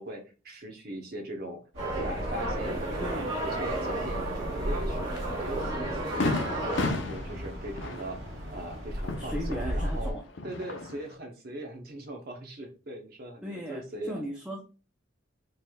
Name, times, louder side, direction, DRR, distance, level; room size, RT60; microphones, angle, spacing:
voice 1, 0.0-1.6 2.0-5.1 5.4-8.2 8.5-10.2 10.4-14.2, right 1 dB, 45° right, 3 dB, 0.8 m, -39 dB
sound 1, 1.7-10.1, equal, 70° right, 1.7 m, -36 dB
sound 2, 1.8-6.9, right 2 dB, 20° right, 1.9 m, -33 dB
voice 2, 3.0-3.4 9.2-10.2 13.4-13.8 14.1-14.6, equal, 5° right, 0 dB, 0.4 m, -37 dB
Fireworks, 5.2-5.3 5.7-5.8 6.2-10.0 10.3-11.1, left 3 dB, 60° left, 0.6 m, -33 dB
4.4 x 3.3 x 2.3 m, 0.34 s
head